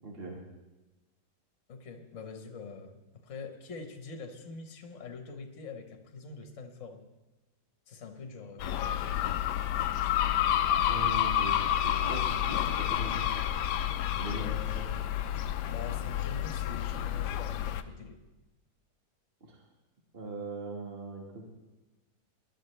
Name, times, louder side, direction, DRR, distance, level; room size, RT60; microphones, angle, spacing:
voice 1, 0.0-0.4 10.9-13.4 14.2-14.8 19.4-19.6 20.1-21.5, right 2 dB, 35° right, -1 dB, 1.9 m, -40 dB
voice 2, 1.7-7.0 7.9-9.4 14.4-15.1 15.7-18.2, left 4 dB, 50° left, 5 dB, 1.5 m, -44 dB
sound 1, 8.6-17.8, left 11 dB, 80° left, 1.2 m, -29 dB
19.0 x 11.5 x 3.3 m, 1.1 s
omnidirectional pair, 1.8 m